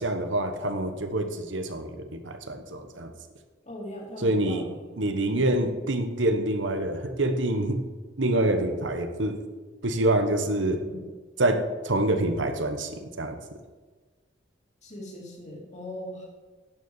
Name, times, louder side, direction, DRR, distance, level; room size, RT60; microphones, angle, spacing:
voice 1, 0.0-3.1 4.2-4.6 5.0-7.9 8.2-9.4 9.8-10.8 11.4-13.4, right 1 dB, 75° right, 7 dB, 1.2 m, -26 dB
voice 2, 3.6-4.8 5.3-5.4 10.8-11.0 14.8-16.2, left 1 dB, 40° left, -1 dB, 2.8 m, -39 dB
10.5 x 6.8 x 7.2 m, 1.3 s
head